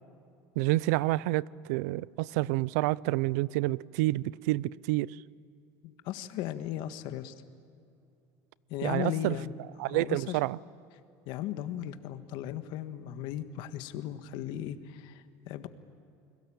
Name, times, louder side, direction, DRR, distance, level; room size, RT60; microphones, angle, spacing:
voice 1, 0.6-5.2 8.8-9.3 9.8-10.6, right 19 dB, 85° right, 0.6 m, -28 dB
voice 2, 5.8-7.3 8.7-9.5 9.9-10.4 11.2-15.7, left 11 dB, 65° left, 1.6 m, -37 dB
29.5 x 22.0 x 8.8 m
cardioid pair, 140°, 8 cm